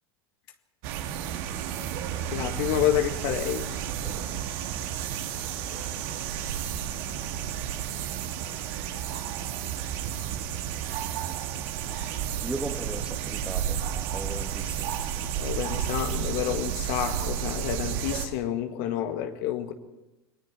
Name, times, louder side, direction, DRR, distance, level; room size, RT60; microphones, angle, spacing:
sound 1, 0.8-18.3, right 9 dB, 50° right, 2.2 m, -32 dB
voice 1, 2.3-3.6 15.4-19.7, left 11 dB, 50° left, 7 dB, 1.9 m, -29 dB
voice 2, 12.4-13.8 14.1-15.0, right 2 dB, 10° right, 6 dB, 2.1 m, -37 dB
29.0 x 21.5 x 4.6 m, 0.98 s
figure-of-eight pair, 85°, 14 cm